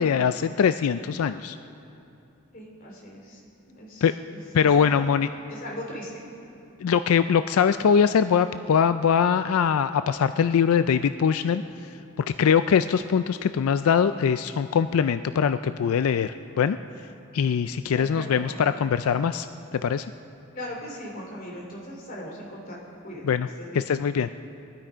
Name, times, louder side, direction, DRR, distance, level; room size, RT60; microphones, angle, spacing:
voice 1, 0.0-1.6 4.0-4.1 4.5-5.3 6.8-11.6 12.4-16.8 17.3-19.5 19.7-20.1 23.2-23.5 23.7-24.3, left 7 dB, 90° left, 11 dB, 0.4 m, -22 dB
voice 2, 2.5-3.4 3.7-5.1 5.5-6.1 17.9-18.8 20.5-22.8 23.0-23.2 23.6-23.8, left 1 dB, 40° left, -2 dB, 3.0 m, -39 dB
20.5 x 12.0 x 5.0 m, 2.8 s
head